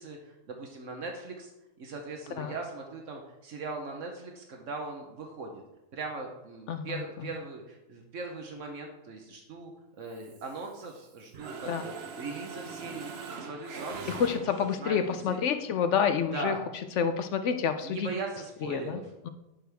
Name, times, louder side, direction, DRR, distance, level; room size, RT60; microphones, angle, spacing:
voice 1, 0.0-1.5 1.8-5.6 5.9-9.7 10.0-15.4 16.3-16.6 17.8-19.0, right 3 dB, 75° right, 2 dB, 1.3 m, -39 dB
voice 2, 6.7-7.3 11.7-11.8 14.1-16.6 17.0-18.1 18.6-19.3, left 7 dB, 70° left, 9 dB, 0.9 m, -29 dB
Mechanisms, 10.1-11.0 11.3-14.9, right 5 dB, 55° right, 1.0 m, -42 dB
10.0 x 6.3 x 3.4 m, 0.97 s
omnidirectional pair, 1.3 m